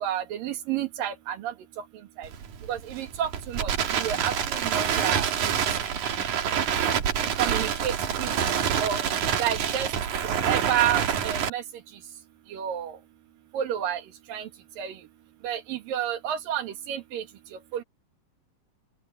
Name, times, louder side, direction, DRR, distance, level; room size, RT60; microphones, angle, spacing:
voice 1, 0.0-1.8 2.2-2.3 2.7-5.5 7.4-8.5 8.8-9.1 9.4-9.9 10.2-11.6 12.5-13.0 13.5-14.0 14.3-14.5 14.8-15.0 15.4-17.2 17.7-17.8, right 10 dB, 85° right, 3.6 m, -30 dB
Crackle, 2.2-11.5, right 8 dB, 65° right, 3.2 m, -27 dB
open air
omnidirectional pair, 3.9 m